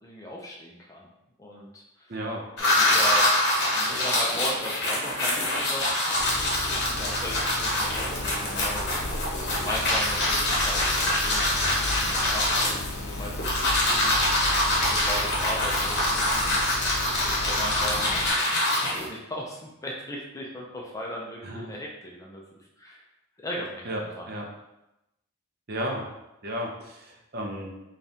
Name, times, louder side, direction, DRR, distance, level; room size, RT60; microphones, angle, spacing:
voice 1, 0.0-1.1 1.4-2.1 2.6-3.3 3.7-5.9 6.9-16.8 17.2-18.1 19.1-22.4 22.8-23.0 23.4-24.3, left 1 dB, 15° left, -2 dB, 0.4 m, -38 dB
voice 2, 2.1-2.4 21.4-21.7 23.8-24.0 24.3-24.5 25.7-26.0 26.4-27.7, equal, 45° right, 0 dB, 0.6 m, -33 dB
sound 1, 2.6-19.1, left 1 dB, 50° left, 0.9 m, -25 dB
sound 2, 6.2-18.3, left 1 dB, 80° left, 0.6 m, -35 dB
5.0 x 2.4 x 2.7 m, 0.91 s
head